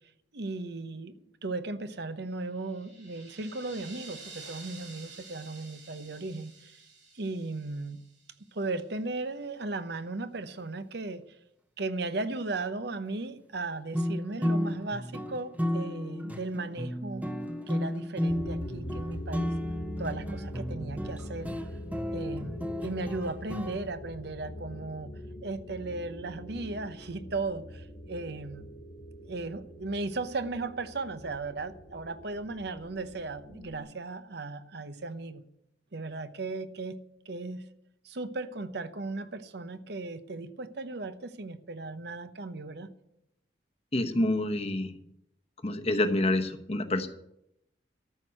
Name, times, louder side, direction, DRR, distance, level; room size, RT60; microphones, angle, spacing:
voice 1, 0.3-6.8 7.1-8.0 8.5-11.4 11.8-17.3 17.7-19.6 20.0-21.5 22.1-28.7 29.2-35.4 35.9-37.0 37.3-37.7 38.0-42.9, right 3 dB, 60° right, 0.8 m, -36 dB
sound 1, 2.4-8.6, right 4 dB, 80° right, 5.4 m, -50 dB
sound 2, 13.9-23.8, equal, 10° right, 0.8 m, -33 dB
sound 3, 18.3-33.8, equal, 75° left, 2.1 m, -43 dB
voice 2, 43.9-45.0 45.6-47.1, left 1 dB, 35° left, 1.0 m, -27 dB
13.5 x 6.3 x 9.9 m
head